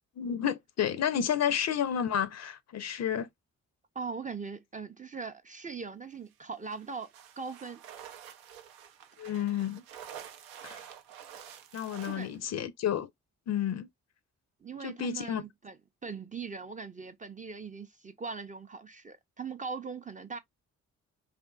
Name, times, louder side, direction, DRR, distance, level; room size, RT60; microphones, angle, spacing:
voice 1, 0.2-3.3 9.2-9.8 10.6-10.9 11.7-13.1 13.5-13.9 14.8-15.4, left 9 dB, 50° left, 0.5 m, -31 dB
voice 2, 3.9-7.1 7.4-7.8 12.0-12.4 14.6-20.4, right 5 dB, 25° right, 0.4 m, -40 dB
sound 1, 6.6-12.4, right 9 dB, 85° right, 0.5 m, -48 dB
2.6 x 2.5 x 2.2 m
supercardioid pair, 50°, 35 cm